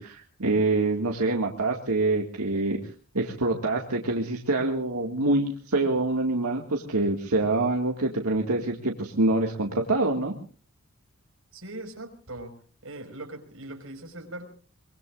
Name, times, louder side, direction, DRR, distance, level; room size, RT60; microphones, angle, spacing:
voice 1, 0.0-10.3, right 2 dB, 85° right, 1 dB, 2.1 m, -26 dB
voice 2, 11.5-12.5 12.8-14.5, right 1 dB, 65° right, 4 dB, 5.2 m, -40 dB
24.0 x 23.5 x 2.5 m, 0.40 s
head